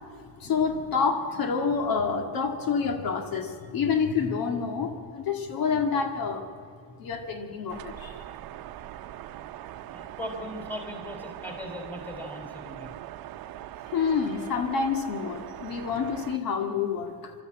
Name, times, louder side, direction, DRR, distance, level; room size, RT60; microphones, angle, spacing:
voice 1, 0.1-6.5 7.0-8.2 13.9-17.3, left 5 dB, 75° left, 5 dB, 2.0 m, -28 dB
sound 1, 7.7-16.4, right 13 dB, 80° right, 0.8 m, -41 dB
voice 2, 9.8-13.0, left 1 dB, 5° left, 3 dB, 3.4 m, -39 dB
26.0 x 12.5 x 8.7 m, 2.1 s
cardioid pair, 155°, 35 cm